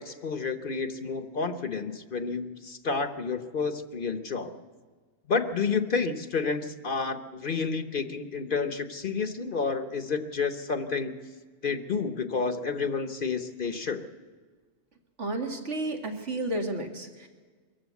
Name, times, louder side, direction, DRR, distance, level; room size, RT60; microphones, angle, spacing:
voice 1, 0.0-4.5 5.3-11.2 11.6-14.0, left 5 dB, 50° left, 10 dB, 1.0 m, -30 dB
voice 2, 15.2-17.3, right 2 dB, 80° right, 4 dB, 2.3 m, -32 dB
23.0 x 14.5 x 8.2 m, 1.5 s
omnidirectional pair, 1.2 m